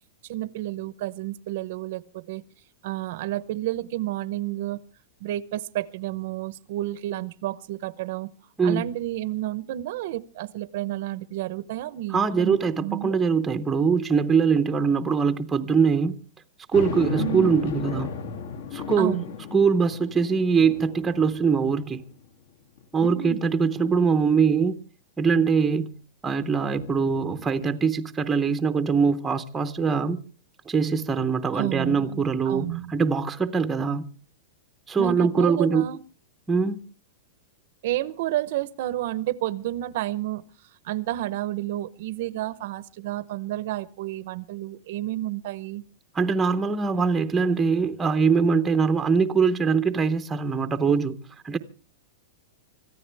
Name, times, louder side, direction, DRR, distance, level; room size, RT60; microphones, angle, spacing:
voice 1, 0.3-2.4 2.8-4.8 5.2-8.3 8.6-13.2 17.2-17.5 19.0-19.3 23.0-23.4 31.6-32.9 35.0-36.0 37.8-40.4 40.8-45.8, right 15 dB, 45° right, 0.7 m, -31 dB
voice 2, 12.1-16.2 16.7-18.1 18.7-19.2 19.5-22.0 22.9-24.8 25.2-25.9 26.2-30.2 30.7-34.0 34.9-35.8 36.5-36.8 46.1-51.2 51.4-51.6, right 5 dB, 10° right, 0.7 m, -22 dB
sound 1, 16.7-22.3 22.8-22.9 26.7-27.8, left 7 dB, 65° left, 2.6 m, -35 dB
25.5 x 14.5 x 3.4 m
supercardioid pair, 175°, 0 cm